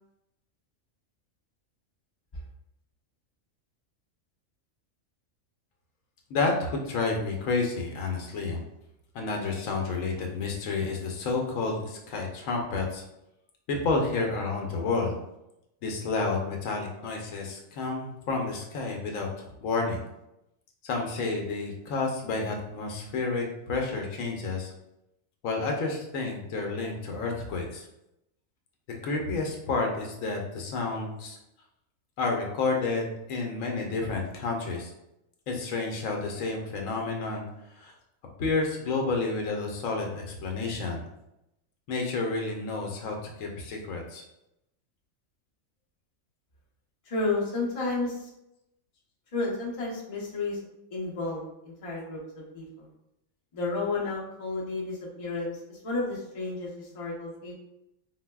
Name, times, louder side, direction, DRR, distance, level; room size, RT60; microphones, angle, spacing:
voice 1, 6.3-8.6 9.1-13.0 13.7-15.2 15.8-20.0 20.8-24.7 25.4-27.9 29.0-31.4 32.2-34.9 35.5-37.5 37.8-37.9 38.4-41.1 41.9-44.2, left 3 dB, 80° left, 1 dB, 1.0 m, -30 dB
voice 2, 47.0-48.3 49.3-50.6 50.9-52.9 53.5-57.5, left 3 dB, 35° left, -4 dB, 0.7 m, -32 dB
4.4 x 2.0 x 2.2 m, 0.85 s
omnidirectional pair, 1.4 m